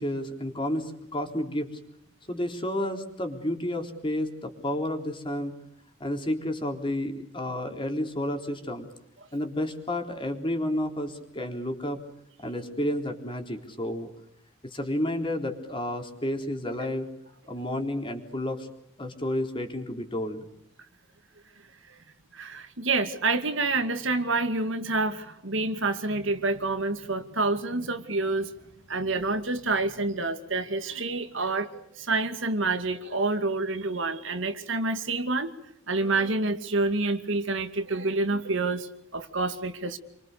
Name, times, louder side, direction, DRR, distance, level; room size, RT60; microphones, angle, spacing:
voice 1, 0.0-1.7 2.3-5.5 6.0-8.9 9.3-12.0 12.4-14.1 14.6-17.1 17.5-18.7 19.0-20.5, left 1 dB, 25° left, 4 dB, 3.7 m, -31 dB
voice 2, 22.3-28.5 28.9-35.5 35.9-40.0, right 3 dB, 65° right, 7 dB, 2.3 m, -28 dB
29.0 x 24.5 x 6.8 m, 0.74 s
head